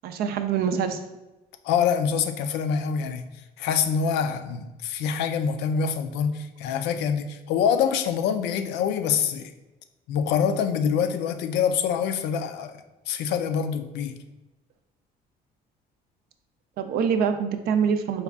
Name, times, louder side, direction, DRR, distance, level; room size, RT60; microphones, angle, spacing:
voice 1, 0.0-1.0 16.8-18.2, right 7 dB, 65° right, 7 dB, 0.4 m, -25 dB
voice 2, 1.6-3.2 3.6-9.5 10.1-14.2, left 7 dB, 85° left, 9 dB, 0.4 m, -25 dB
4.0 x 2.3 x 3.4 m, 1.1 s
cardioid pair, 110°, 17 cm